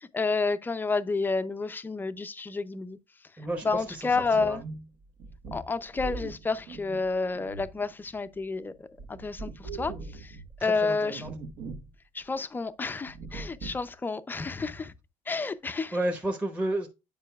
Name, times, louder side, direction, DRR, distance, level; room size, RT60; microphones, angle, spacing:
voice 1, 0.0-3.0 3.6-4.6 5.5-11.2 12.1-14.9 15.3-16.0, left 4 dB, 15° left, 0.5 m, -30 dB
voice 2, 3.4-4.6 10.6-11.3 15.9-16.9, right 1 dB, 10° right, 1.0 m, -32 dB
sound 1, 3.4-8.4 8.8-10.6 11.1-11.9 12.2-12.3 13.0-13.9, right 3 dB, 65° right, 1.4 m, -41 dB
9.6 x 5.4 x 2.3 m
cardioid pair, 170°, 14 cm